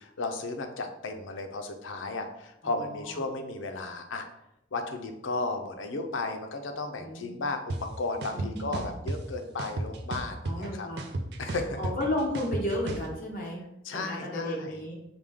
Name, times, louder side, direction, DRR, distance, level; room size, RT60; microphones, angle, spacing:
voice 1, 0.0-4.3 4.7-10.9 11.4-11.8 13.8-14.8, left 3 dB, 85° left, 5 dB, 0.5 m, -34 dB
voice 2, 2.6-3.2 7.0-7.3 8.3-8.9 10.4-11.1 11.8-13.6 13.9-14.9, left 1 dB, 45° left, -2 dB, 0.9 m, -33 dB
sound 1, 7.7-7.8 8.2-9.2 9.6-10.7 11.0-13.1, right 2 dB, 55° right, 0.4 m, -33 dB
4.9 x 2.2 x 3.6 m, 0.85 s
head